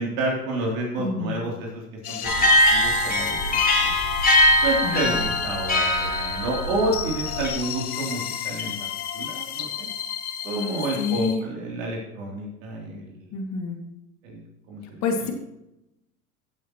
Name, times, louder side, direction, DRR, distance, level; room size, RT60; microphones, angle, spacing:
voice 1, 0.0-2.3 2.7-3.4 3.8-3.9 4.6-8.7 9.1-9.9 10.4-13.2 14.2-15.3, right 2 dB, 60° right, -1 dB, 3.1 m, -29 dB
voice 2, 1.0-1.4 4.8-5.2 11.0-11.4 13.3-13.8 15.0-15.3, left 5 dB, 35° left, 3 dB, 2.1 m, -27 dB
sound 1, 2.0-11.3, left 9 dB, 75° left, 1.1 m, -33 dB
Belltower Harnosand, 2.2-7.5, left 1 dB, 20° left, 2.6 m, -21 dB
14.5 x 7.2 x 3.0 m, 0.87 s
hypercardioid pair, 95°, 45 cm